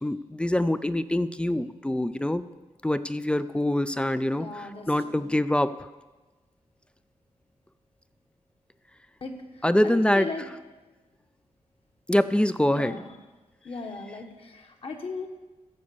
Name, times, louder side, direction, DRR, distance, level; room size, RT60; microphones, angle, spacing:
voice 1, 0.0-2.4 2.8-5.9 9.6-10.3 12.1-13.0, left 1 dB, 10° left, 13 dB, 0.4 m, -25 dB
voice 2, 4.3-5.3 9.2-10.4 12.7-13.1 13.6-15.3, left 3 dB, 50° left, 3 dB, 1.5 m, -38 dB
14.5 x 5.2 x 7.0 m, 1.2 s
wide cardioid pair, 135°, 12 cm